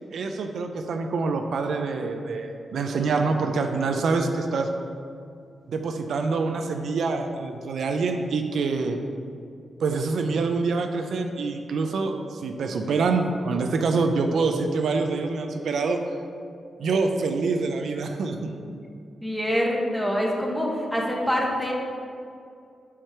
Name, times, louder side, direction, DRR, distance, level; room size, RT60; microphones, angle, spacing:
voice 1, 0.1-4.7 5.7-9.0 9.8-16.0 16.8-18.4, right 4 dB, 80° right, 5 dB, 0.4 m, -26 dB
voice 2, 19.2-21.7, equal, 5° left, -2 dB, 1.3 m, -25 dB
4.9 x 4.5 x 5.6 m, 2.4 s
cardioid pair, 80°, 0 cm